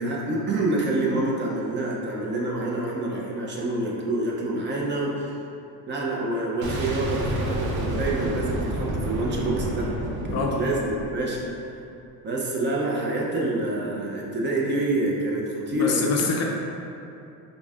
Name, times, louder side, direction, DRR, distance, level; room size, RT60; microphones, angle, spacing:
voice 1, 0.0-5.3 5.9-9.9 10.3-11.4 12.2-16.3, right 2 dB, 30° right, -3 dB, 0.5 m, -27 dB
Boom, 6.6-11.5, right 1 dB, 85° right, 0.7 m, -29 dB
voice 2, 10.3-10.7 15.7-16.4, left 4 dB, 45° left, 0 dB, 0.4 m, -26 dB
5.0 x 2.6 x 2.4 m, 2.7 s
cardioid pair, 120°, 38 cm